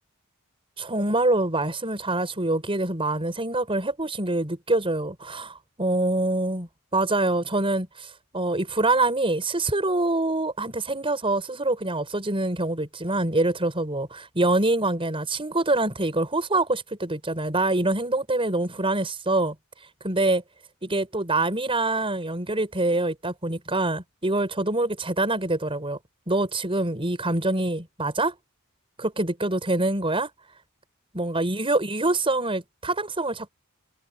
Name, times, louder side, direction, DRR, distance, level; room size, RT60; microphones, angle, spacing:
voice 1, 0.8-19.6 20.0-20.4 20.8-26.0 26.3-28.3 29.0-30.3 31.1-33.5, right 2 dB, 25° right, 5.4 m, -25 dB
head